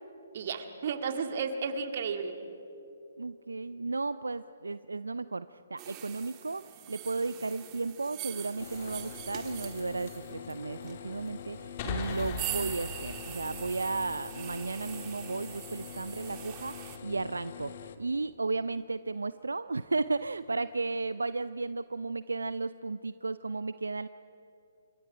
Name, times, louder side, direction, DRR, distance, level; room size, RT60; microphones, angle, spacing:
voice 1, 0.3-2.3, right 5 dB, 50° right, 6 dB, 2.0 m, -33 dB
voice 2, 3.2-24.1, right 3 dB, 80° right, 14 dB, 0.5 m, -34 dB
sound 1, 5.8-17.0, right 14 dB, 25° right, 1.8 m, -43 dB
sound 2, 8.6-18.0, left 7 dB, 50° left, 1.4 m, -45 dB
sound 3, 11.8-15.3, left 5 dB, 35° left, 2.6 m, -40 dB
29.5 x 25.5 x 5.0 m, 2.9 s
figure-of-eight pair, 135°, 0 cm